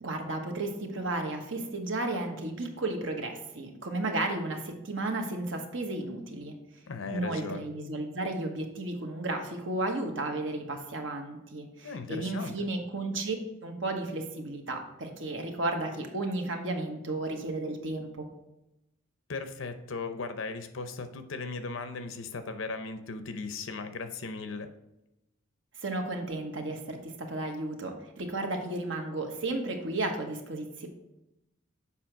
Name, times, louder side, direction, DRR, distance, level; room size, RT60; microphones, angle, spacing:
voice 1, 0.0-6.6 7.1-13.3 13.6-18.3 25.8-30.9, right 2 dB, 70° right, 3 dB, 1.2 m, -33 dB
voice 2, 6.9-7.7 11.8-12.7 19.3-24.7, left 4 dB, 80° left, 9 dB, 0.7 m, -37 dB
7.3 x 4.9 x 4.6 m, 0.92 s
head